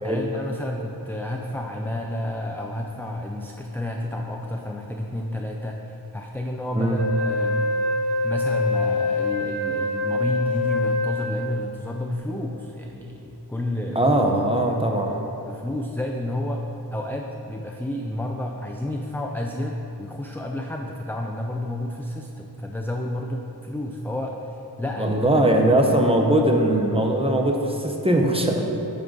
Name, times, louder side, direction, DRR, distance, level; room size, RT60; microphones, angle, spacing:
voice 1, 0.0-7.7 8.2-14.2 14.5-14.8 15.5-16.6 16.9-25.2 25.6-25.8, left 1 dB, 5° left, 1 dB, 0.3 m, -30 dB
Wind instrument woodwind instrument, 6.9-11.7, left 2 dB, 80° right, 0.9 m, -25 dB
voice 2, 14.0-15.2 25.0-28.6, right 1 dB, 15° right, 1 dB, 0.7 m, -20 dB
9.7 x 3.9 x 3.8 m, 3.0 s
wide cardioid pair, 45°, 41 cm